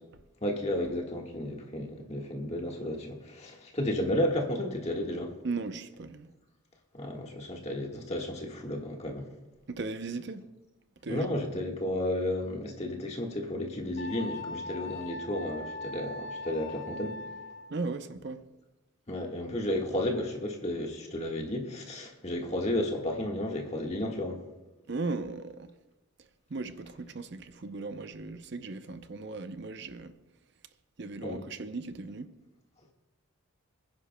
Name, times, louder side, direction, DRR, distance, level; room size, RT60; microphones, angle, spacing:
voice 1, 0.4-5.3 6.9-9.3 11.1-17.2 19.1-24.4 31.2-31.4, left 1 dB, 30° left, 1.5 m, -32 dB
voice 2, 5.4-6.3 9.7-10.4 11.0-11.4 17.7-18.4 24.9-25.7 26.5-30.1 31.0-32.3, right 3 dB, 55° right, 0.6 m, -37 dB
Wind instrument woodwind instrument, 14.0-17.8, left 2 dB, 60° left, 0.8 m, -40 dB
26.5 x 10.5 x 2.2 m
head